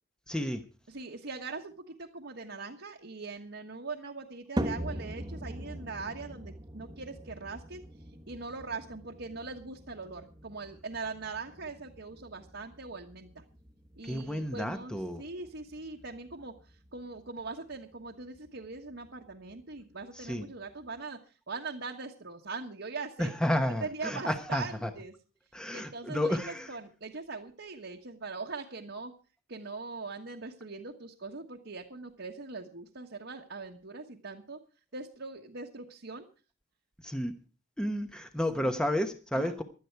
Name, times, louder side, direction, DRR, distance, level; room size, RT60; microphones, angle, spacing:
voice 1, 0.3-0.6 14.0-15.2 20.2-20.4 23.2-24.9 25.5-26.7 37.0-37.3 37.8-39.6, left 1 dB, 5° left, 7 dB, 1.0 m, -31 dB
voice 2, 0.9-7.8 8.3-13.4 14.0-21.2 21.5-23.3 23.7-25.1 25.7-29.1 29.5-34.6 34.9-36.3 38.6-38.8 39.3-39.5, right 3 dB, 60° right, 0 dB, 1.3 m, -41 dB
sound 1, 4.6-21.0, equal, 20° right, 1.1 m, -43 dB
16.5 x 12.0 x 4.6 m, 0.36 s
head